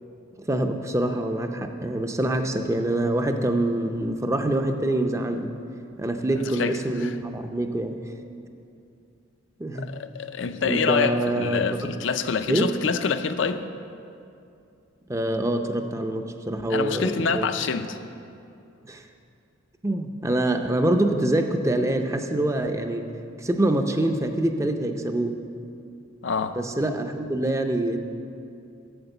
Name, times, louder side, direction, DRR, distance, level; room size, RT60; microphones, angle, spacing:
voice 1, 0.5-5.5 6.0-8.0 9.6-9.9 10.6-11.7 12.5-12.7 15.1-17.5 18.8-19.0 19.8-23.1 23.4-25.4 26.6-28.0, right 1 dB, 15° right, 6 dB, 0.5 m, -25 dB
voice 2, 6.4-7.1 9.7-13.6 16.7-18.0 26.2-26.6, left 5 dB, 70° left, 10 dB, 0.5 m, -26 dB
8.0 x 7.3 x 7.9 m, 2.6 s
head